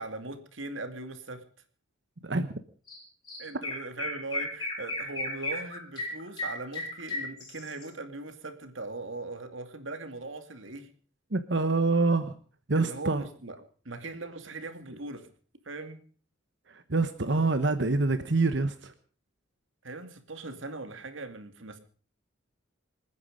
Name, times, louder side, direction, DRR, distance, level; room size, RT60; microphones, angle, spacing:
voice 1, 0.0-1.4 3.4-10.9 12.8-13.6 13.8-15.3 15.6-16.0 19.8-21.8, right 2 dB, 80° right, 8 dB, 2.4 m, -40 dB
voice 2, 2.2-2.5 11.3-12.3 12.7-13.2 16.7-18.9, right 3 dB, 60° right, 10 dB, 1.1 m, -26 dB
Chirp tweet, 2.9-3.0 3.3-7.9, left 2 dB, 20° left, 6.6 m, -35 dB
27.0 x 9.7 x 5.2 m, 0.42 s
head